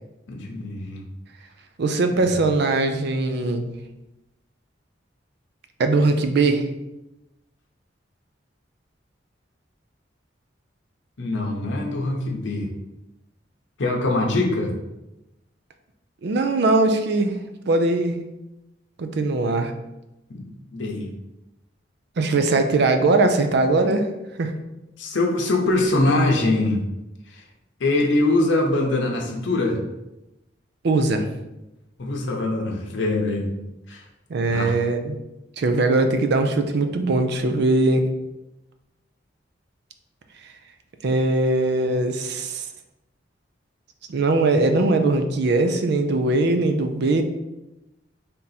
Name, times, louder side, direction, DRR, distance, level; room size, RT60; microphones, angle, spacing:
voice 1, 0.3-1.0 11.2-12.7 13.8-14.7 20.3-20.4 20.7-21.1 25.0-26.8 27.8-29.8 32.0-33.5 33.9-34.0 34.5-34.7, left 2 dB, 80° left, 0 dB, 0.7 m, -23 dB
voice 2, 1.8-3.7 5.8-6.6 16.2-17.4 17.7-18.2 19.0-19.7 22.2-24.1 24.4-24.5 30.8-31.3 34.3-35.2 35.6-38.0 41.0-42.7 44.1-47.2, right 2 dB, 60° right, 7 dB, 0.4 m, -20 dB
3.5 x 2.8 x 4.0 m, 0.95 s
head